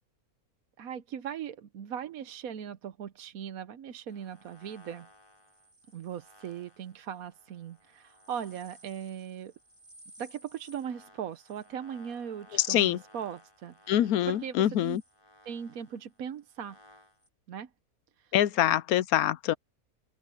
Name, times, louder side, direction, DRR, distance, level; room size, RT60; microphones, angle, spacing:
voice 1, 0.8-5.1 5.9-9.5 10.2-15.0 15.4-16.8 17.5-17.7 18.2-18.3, right 8 dB, 70° right, 1.3 m, -39 dB
sound 1, 4.1-17.3, equal, 20° left, 6.3 m, -58 dB
voice 2, 12.5-13.0 13.9-15.0 18.3-19.5, left 12 dB, 75° left, 1.1 m, -25 dB
open air
omnidirectional pair, 1.6 m